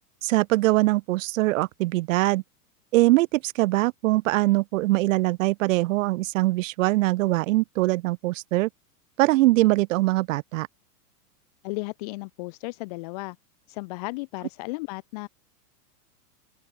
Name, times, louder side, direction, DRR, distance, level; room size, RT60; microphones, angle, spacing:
voice 1, 0.2-2.4 2.9-8.7 9.2-10.7, right 19 dB, 55° right, 0.6 m, -22 dB
voice 2, 11.6-13.4 13.7-15.3, left 26 dB, 30° left, 0.4 m, -34 dB
open air
supercardioid pair, 145°, 46 cm